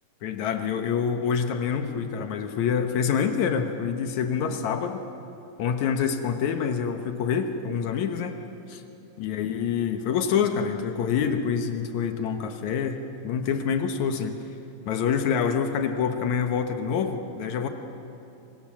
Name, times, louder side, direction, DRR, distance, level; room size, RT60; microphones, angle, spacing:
voice 1, 0.2-5.0 5.6-8.4 8.7-8.8 9.2-14.3 14.9-17.7, left 7 dB, 80° left, 6 dB, 1.6 m, -26 dB
29.5 x 24.5 x 7.5 m, 2.9 s
omnidirectional pair, 5.1 m